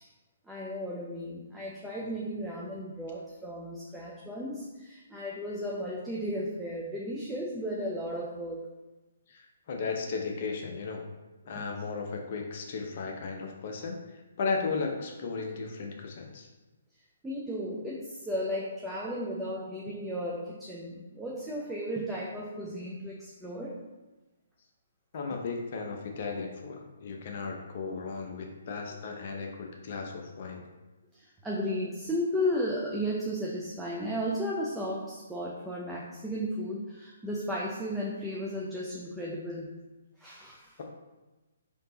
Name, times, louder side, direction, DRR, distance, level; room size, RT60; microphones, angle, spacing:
voice 1, 0.5-8.7 17.2-23.8 31.4-39.7 40.2-40.7, equal, 5° right, -5 dB, 0.5 m, -34 dB
voice 2, 9.3-11.0 11.5-16.5 25.1-30.6, left 4 dB, 45° left, 1 dB, 0.6 m, -35 dB
3.5 x 2.8 x 3.8 m, 1.1 s
figure-of-eight pair, 130°, 0 cm